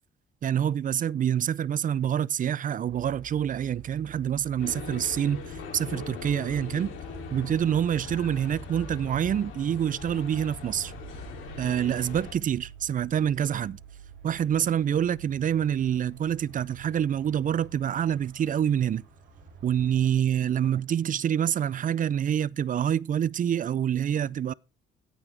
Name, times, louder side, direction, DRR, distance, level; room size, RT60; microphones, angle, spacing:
voice 1, 0.4-7.0 7.3-10.9 11.6-13.8 14.2-19.0 19.6-24.5, right 9 dB, 40° right, 0.4 m, -26 dB
sound 1, 2.9-20.2, right 6 dB, 70° right, 4.6 m, -48 dB
sound 2, 4.6-12.3, left 5 dB, 85° left, 2.9 m, -41 dB
17.0 x 6.0 x 3.4 m
cardioid pair, 90°, 20 cm